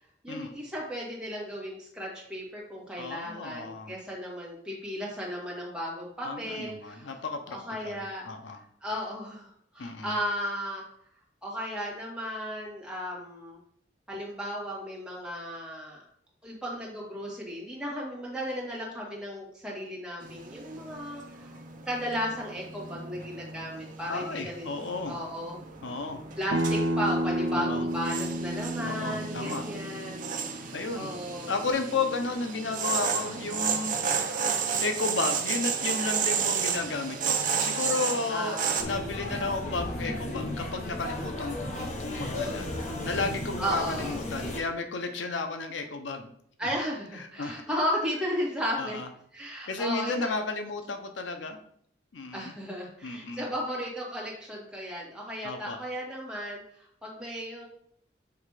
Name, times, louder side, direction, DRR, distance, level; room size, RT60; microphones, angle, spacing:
voice 1, 0.2-7.2 7.5-8.2 8.8-10.8 11.4-13.6 14.1-16.0 16.4-21.6 21.9-25.6 26.4-31.5 38.3-38.8 43.6-44.2 46.6-49.0 49.3-50.3 52.3-57.7, equal, 5° right, -4 dB, 1.9 m, -35 dB
voice 2, 3.0-3.9 6.2-7.6 7.8-8.6 9.8-10.1 24.1-25.2 25.8-26.2 27.5-27.8 28.8-29.6 30.7-31.1 31.5-34.0 34.8-42.7 43.0-46.3 47.1-47.6 48.8-49.1 49.7-51.6 52.1-52.5 53.0-53.5 55.4-55.8, left 3 dB, 85° left, 6 dB, 0.7 m, -33 dB
sound 1, 20.2-38.8, right 6 dB, 45° right, 0.7 m, -33 dB
Acoustic guitar, 26.5-31.7, right 1 dB, 85° right, 0.5 m, -31 dB
sound 2, 38.8-44.6, left 1 dB, 40° left, 1.1 m, -34 dB
7.0 x 3.2 x 4.8 m, 0.67 s
head